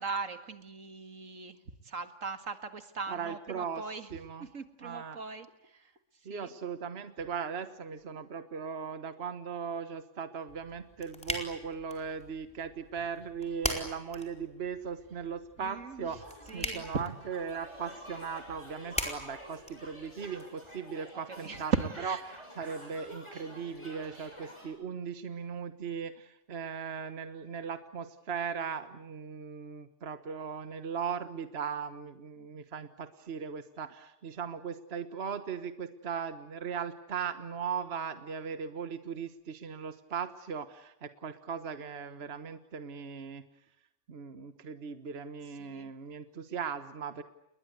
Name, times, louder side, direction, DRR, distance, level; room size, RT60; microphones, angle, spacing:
voice 1, 0.0-1.6 1.8-4.1 4.4-5.5 5.7-5.8 6.3-6.5 15.6-16.1 16.5-16.8 21.4-22.2 45.6-45.9, right 5 dB, 75° right, 10 dB, 2.3 m, -38 dB
voice 2, 3.1-3.8 4.1-4.5 4.8-5.2 6.2-21.7 22.0-43.4 44.1-47.2, right 6 dB, 50° right, 11 dB, 1.5 m, -38 dB
sound 1, 10.5-20.4, equal, 5° left, 4.2 m, -42 dB
sound 2, 16.2-24.7, equal, 20° left, 8.0 m, -49 dB
29.5 x 22.0 x 8.1 m, 0.82 s
omnidirectional pair, 1.4 m